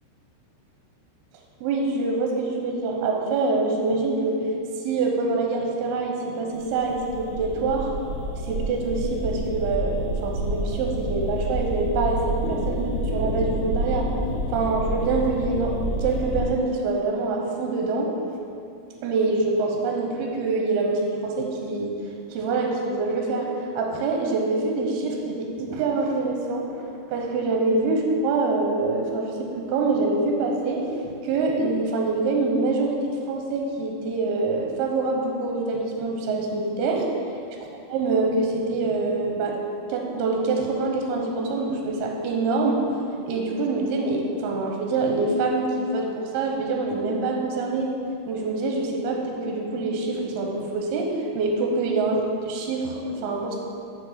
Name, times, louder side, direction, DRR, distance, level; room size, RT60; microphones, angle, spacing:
voice 1, 1.6-4.4 4.8-7.9 8.4-14.1 14.5-18.1 19.0-22.0 22.3-23.5 23.8-26.9 27.1-30.9 31.2-37.1 37.9-39.6 39.9-42.8 43.3-47.9 48.3-53.6, right 3 dB, 80° right, 0 dB, 2.6 m, -25 dB
sound 1, 6.6-16.5, right 1 dB, 75° left, 3.0 m, -28 dB
6.5 x 4.8 x 4.9 m, 2.5 s
omnidirectional pair, 4.6 m